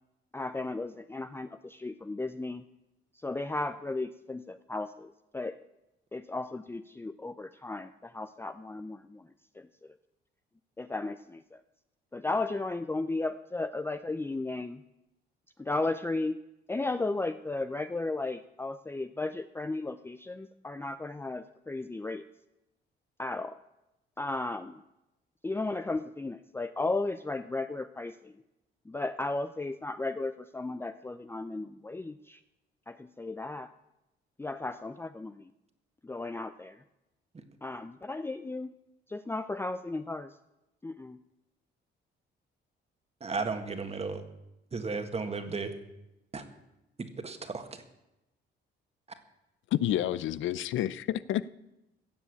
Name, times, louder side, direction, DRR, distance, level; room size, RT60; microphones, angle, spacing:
voice 1, 0.3-2.6 3.2-5.5 6.1-9.3 9.6-9.7 10.8-11.6 12.1-14.8 15.6-16.4 16.7-22.2 23.2-23.6 24.2-24.8 25.4-28.3 28.9-32.4 32.9-33.7 34.4-35.5 36.0-36.8 37.6-38.7 39.1-40.3 40.8-41.2, left 2 dB, 10° left, 0.5 m, -35 dB
voice 2, 43.2-44.2 44.7-45.7 46.3-46.4 47.2-47.7, right 4 dB, 30° right, 1.7 m, -34 dB
voice 3, 49.7-51.5, left 12 dB, 80° left, 0.5 m, -29 dB
16.0 x 7.3 x 8.4 m
cardioid pair, 90°, 20 cm